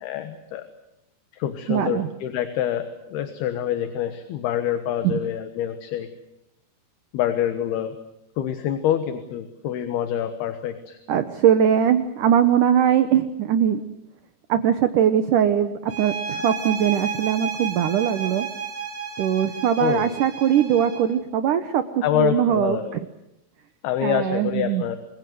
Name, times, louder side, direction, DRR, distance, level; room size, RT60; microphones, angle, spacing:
voice 1, 0.0-0.7 1.3-6.1 7.1-8.0 8.4-11.0 19.8-20.1 22.0-22.9 23.8-25.0, left 10 dB, 65° left, 9 dB, 3.1 m, -26 dB
voice 2, 1.7-2.1 5.0-5.2 11.1-13.8 14.5-18.5 19.2-22.8 24.0-24.8, right 9 dB, 85° right, 10 dB, 1.8 m, -21 dB
sound 1, 15.9-21.2, right 6 dB, 70° right, 5.1 m, -32 dB
28.0 x 22.0 x 7.9 m, 0.86 s
omnidirectional pair, 5.3 m